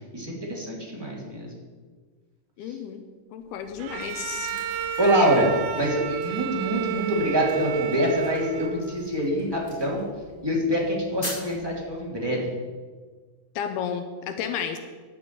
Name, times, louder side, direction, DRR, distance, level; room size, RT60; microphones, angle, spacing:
voice 1, 0.1-1.5 5.0-5.5 5.7-10.0 10.4-12.4, equal, 10° right, -3 dB, 2.0 m, -25 dB
voice 2, 2.6-3.0 3.3-4.6 13.6-14.8, left 8 dB, 85° left, 7 dB, 2.7 m, -32 dB
sound 1, 3.6-12.0, left 1 dB, 15° left, 3.8 m, -44 dB
Bowed string instrument, 3.8-9.1, right 8 dB, 85° right, 2.7 m, -31 dB
10.5 x 6.9 x 8.4 m, 1.4 s
omnidirectional pair, 4.4 m